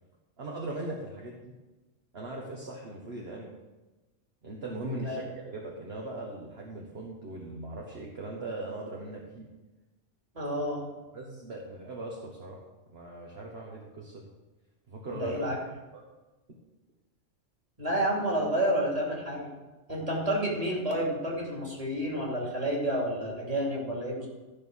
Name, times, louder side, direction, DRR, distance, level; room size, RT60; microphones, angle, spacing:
voice 1, 0.4-1.5 2.1-3.5 4.4-9.5 11.1-12.6 12.9-14.3 14.9-15.3 15.9-16.0, right 2 dB, 50° right, -2 dB, 1.5 m, -39 dB
voice 2, 4.8-5.2 10.3-10.8 15.1-15.6 17.8-19.5 19.9-24.3, right 1 dB, 30° right, -2 dB, 2.7 m, -30 dB
13.5 x 5.6 x 6.4 m, 1.1 s
omnidirectional pair, 1.4 m